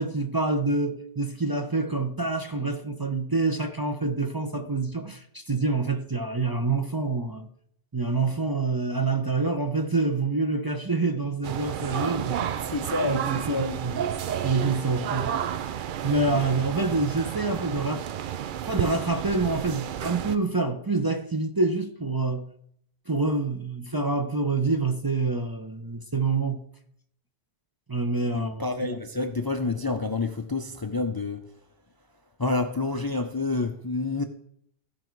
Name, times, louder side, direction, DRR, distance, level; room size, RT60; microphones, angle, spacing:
voice 1, 0.0-7.5 7.9-12.4 13.0-14.0 14.4-15.4 16.0-18.1 18.7-22.5 23.1-26.6 27.9-29.0, right 3 dB, 25° right, 0.7 m, -27 dB
sound 1, 11.4-20.4, right 9 dB, 60° right, 0.6 m, -31 dB
voice 2, 12.6-13.7 28.3-31.5 32.4-34.3, left 3 dB, 25° left, 0.6 m, -28 dB
16.0 x 5.7 x 4.6 m
omnidirectional pair, 1.1 m